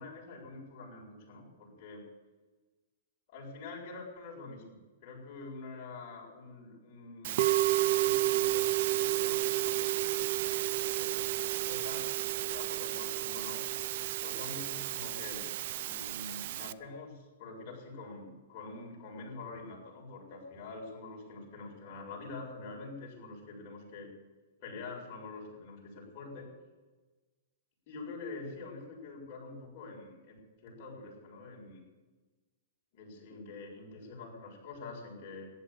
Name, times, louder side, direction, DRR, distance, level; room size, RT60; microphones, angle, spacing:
voice 1, 0.0-2.0 3.3-7.5 7.8-12.0 12.3-13.6 14.2-15.5 15.8-24.1 24.6-26.5 27.9-30.4 30.6-31.8 32.9-35.5, left 3 dB, 40° left, -3 dB, 7.4 m, -46 dB
Musical instrument, 7.2-16.7, right 15 dB, 50° right, 0.5 m, -31 dB
15.0 x 11.0 x 8.5 m, 1.2 s
hypercardioid pair, 155°, 0 cm